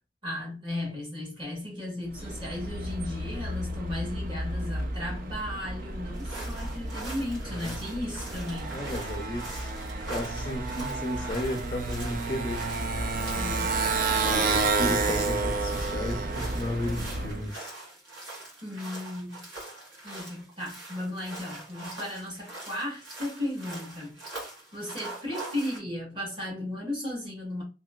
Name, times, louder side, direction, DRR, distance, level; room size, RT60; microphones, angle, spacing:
voice 1, 0.2-8.8 13.3-13.7 14.8-15.2 18.6-19.4 20.0-24.1 24.7-27.6, left 1 dB, 30° right, 1.5 m, -35 dB
Motorcycle, 2.1-17.5, right 3 dB, 50° right, 0.5 m, -31 dB
sound 1, 6.1-25.8, right 2 dB, 85° right, 1.5 m, -43 dB
voice 2, 7.4-7.7 8.7-9.7 10.1-12.6 14.3-17.7 20.1-20.3, left 1 dB, 25° left, 0.4 m, -34 dB
2.9 x 2.8 x 2.2 m
head